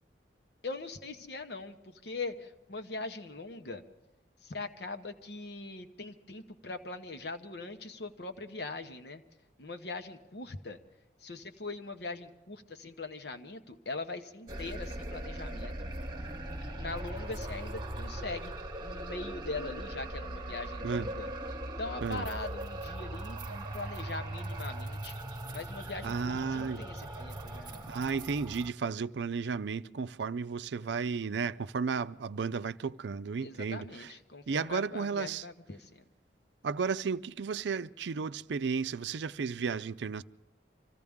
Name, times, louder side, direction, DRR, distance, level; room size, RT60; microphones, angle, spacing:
voice 1, 0.6-3.9 4.4-9.2 9.6-10.8 11.2-16.0 16.7-18.5 18.8-21.3 21.7-25.1 25.5-27.9 33.4-36.1, left 3 dB, 65° left, 1.0 m, -41 dB
sound 1, 14.5-28.7, right 1 dB, 25° right, 1.1 m, -40 dB
voice 2, 26.0-26.8 27.9-34.1 34.5-35.5 36.6-40.2, right 5 dB, 75° right, 0.4 m, -33 dB
25.5 x 15.5 x 3.6 m
head